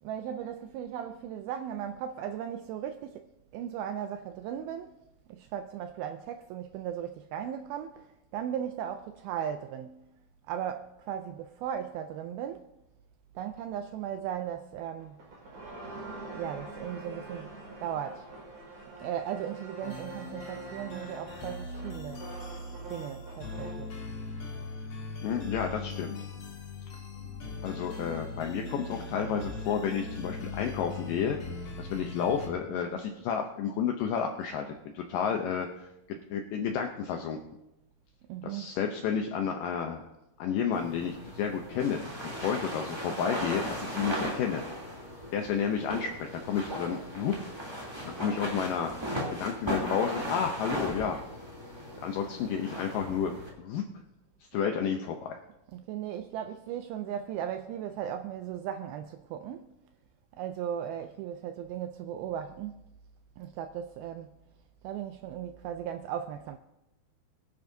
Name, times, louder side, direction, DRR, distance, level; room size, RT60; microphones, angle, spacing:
voice 1, 0.0-4.9 5.3-10.1 10.5-12.7 13.4-15.2 16.4-17.5 17.8-18.3 19.0-22.3 22.9-23.9 38.3-38.8 55.7-59.7 60.3-62.9 63.4-64.3 64.8-66.6, right 9 dB, 85° right, 2.1 m, -37 dB
sound 1, 15.0-23.9, right 2 dB, 50° right, 6.1 m, -45 dB
sound 2, 19.8-32.5, left 3 dB, 50° left, 1.8 m, -40 dB
voice 2, 25.2-26.2 27.6-37.4 38.4-40.1 40.4-44.6 45.3-47.4 48.0-51.2 52.0-53.3 53.6-53.9 54.5-55.4, left 7 dB, 80° left, 1.9 m, -31 dB
sound 3, 40.7-53.5, equal, 10° right, 2.3 m, -37 dB
22.5 x 10.0 x 2.7 m
omnidirectional pair, 4.9 m